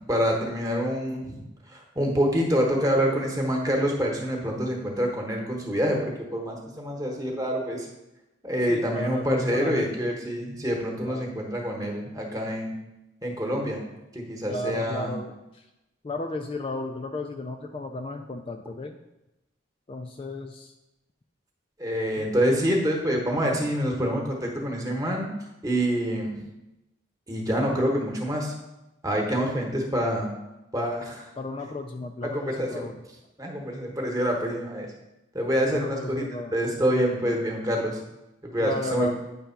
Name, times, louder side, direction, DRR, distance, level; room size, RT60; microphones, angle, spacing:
voice 1, 0.0-7.9 8.4-12.7 13.2-13.8 14.1-15.2 21.8-25.3 25.6-26.3 27.3-28.5 29.0-30.3 30.7-31.3 32.2-32.9 33.4-34.9 35.3-36.2 36.5-38.0 38.4-39.1, equal, 20° right, 0 dB, 1.1 m, -26 dB
voice 2, 8.7-10.1 11.0-11.3 14.5-15.3 16.0-19.0 19.9-20.7 22.2-22.3 31.4-33.0 35.7-36.5 38.6-39.1, left 2 dB, 30° left, 5 dB, 0.3 m, -34 dB
8.7 x 3.4 x 5.7 m, 0.96 s
head